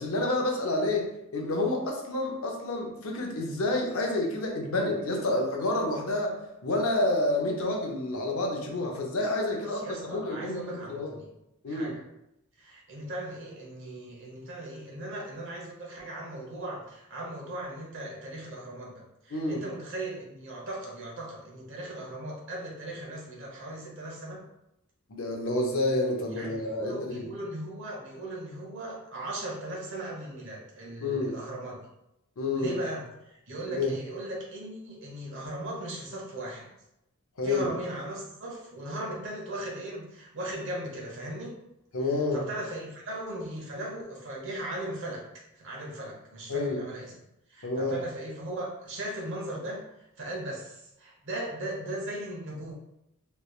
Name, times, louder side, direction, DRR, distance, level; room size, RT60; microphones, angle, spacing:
voice 1, 0.0-11.1 11.6-11.9 19.3-19.6 25.1-27.2 31.0-31.4 32.4-32.7 33.8-33.9 37.4-37.7 41.9-42.4 46.5-46.8 47.6-48.0, left 2 dB, 70° left, 1 dB, 0.7 m, -29 dB
voice 2, 9.6-11.3 11.7-12.0 12.6-24.4 26.3-31.8 32.5-36.7 37.4-41.6 42.3-45.2 45.5-47.1 47.5-49.8 50.2-52.7, right 1 dB, 60° right, -3 dB, 1.1 m, -38 dB
3.3 x 3.2 x 2.4 m, 0.84 s
head